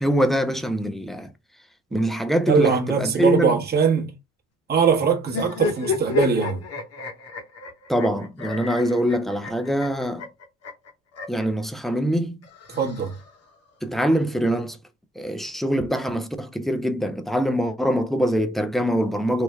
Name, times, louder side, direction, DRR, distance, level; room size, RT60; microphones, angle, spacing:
voice 1, 0.0-1.3 1.9-3.6 7.9-10.2 11.3-12.4 13.8-14.8 15.2-19.4, equal, ahead, 0.4 m, -23 dB
voice 2, 2.5-4.1 4.7-6.6 12.8-13.2, right 5 dB, 25° right, 0.9 m, -21 dB
sound 1, 5.3-11.5 12.4-13.6, left 5 dB, 45° left, 1.0 m, -31 dB
3.2 x 2.1 x 3.3 m
cardioid pair, 100°, 36 cm